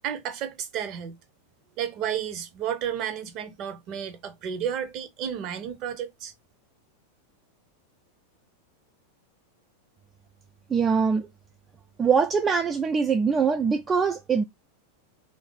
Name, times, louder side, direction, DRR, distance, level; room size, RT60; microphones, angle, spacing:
voice 1, 0.0-1.2 1.8-6.3, right 9 dB, 40° right, 0.7 m, -32 dB
voice 2, 10.7-11.3 12.0-14.4, right 5 dB, 20° right, 0.4 m, -23 dB
3.2 x 2.5 x 3.8 m
figure-of-eight pair, 90°, 0 cm